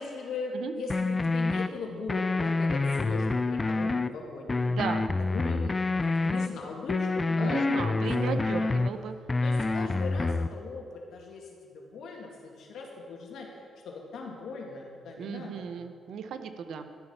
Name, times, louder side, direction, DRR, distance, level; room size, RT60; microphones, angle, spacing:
voice 1, 0.0-4.7 5.0-8.7 9.4-13.5 13.8-15.7, left 4 dB, 75° left, 0 dB, 2.2 m, -39 dB
sound 1, 0.9-1.7 2.1-4.1 4.5-6.5 6.9-8.9 9.3-10.5, left 3 dB, 20° left, 0.3 m, -27 dB
voice 2, 4.7-5.1 7.4-9.1 15.2-16.9, right 6 dB, 75° right, 9 dB, 0.8 m, -35 dB
12.5 x 8.3 x 5.7 m, 2.2 s
cardioid pair, 115°, 0 cm